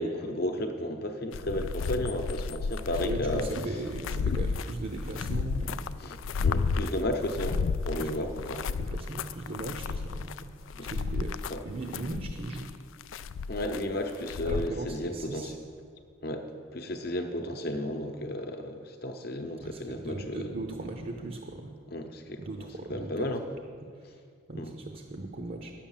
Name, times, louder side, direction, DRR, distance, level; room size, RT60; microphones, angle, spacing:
voice 1, 0.0-3.5 6.0-6.2 6.4-8.7 10.7-10.9 11.5-11.6 13.5-15.6 16.2-16.5 16.7-20.5 21.9-22.4 22.9-23.5 24.5-24.7, left 1 dB, 50° left, 6 dB, 0.9 m, -33 dB
sound 1, 1.3-14.7, left 5 dB, 85° left, 0.4 m, -32 dB
voice 2, 3.0-5.9 7.9-8.1 8.9-10.4 10.8-11.3 11.7-12.7 14.4-15.5 19.6-21.7 22.4-23.2 24.5-25.7, right 2 dB, 45° right, 4 dB, 0.7 m, -38 dB
9.8 x 7.3 x 7.3 m, 2.2 s
head